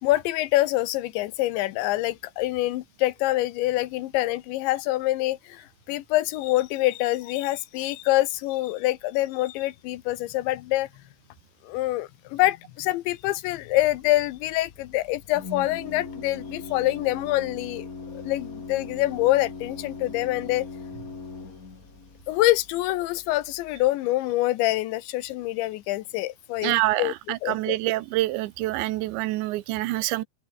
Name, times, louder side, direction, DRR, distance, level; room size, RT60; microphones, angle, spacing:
voice 1, 0.0-10.9 11.6-20.7 22.3-27.1 27.4-27.8, left 17 dB, 85° left, 3.4 m, -25 dB
Organ, 13.7-23.9, left 4 dB, 25° left, 2.1 m, -40 dB
voice 2, 26.6-30.2, right 17 dB, 85° right, 3.3 m, -26 dB
open air
omnidirectional pair, 5.1 m